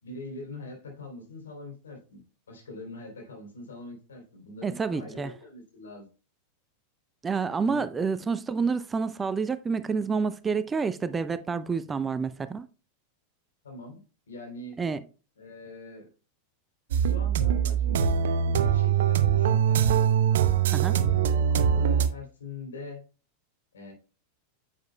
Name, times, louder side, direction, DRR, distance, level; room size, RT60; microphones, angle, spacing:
voice 1, 0.0-2.2 2.5-6.1 7.6-7.9 13.6-14.8 15.4-16.1 17.1-18.1 18.3-19.8 20.4-23.0 23.7-23.9, left 2 dB, 75° left, 3.3 m, -43 dB
voice 2, 4.6-5.3 7.2-12.7 14.8-15.0 20.7-20.9, right 5 dB, 20° right, 0.5 m, -28 dB
sound 1, 16.9-22.1, right 8 dB, 65° right, 0.6 m, -23 dB
9.3 x 7.4 x 2.2 m
figure-of-eight pair, 90°, 0 cm